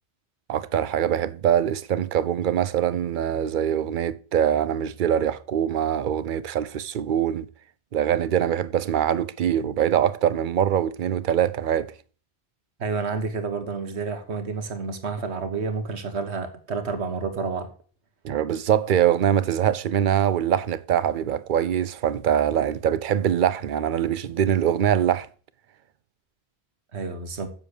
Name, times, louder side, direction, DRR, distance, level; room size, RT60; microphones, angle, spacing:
voice 1, 0.5-7.5 7.9-11.9 18.2-25.3, right 9 dB, 55° right, 0.7 m, -23 dB
voice 2, 12.8-17.7 26.9-27.5, right 4 dB, 90° right, 1.5 m, -30 dB
7.4 x 7.3 x 6.6 m
omnidirectional pair, 1.1 m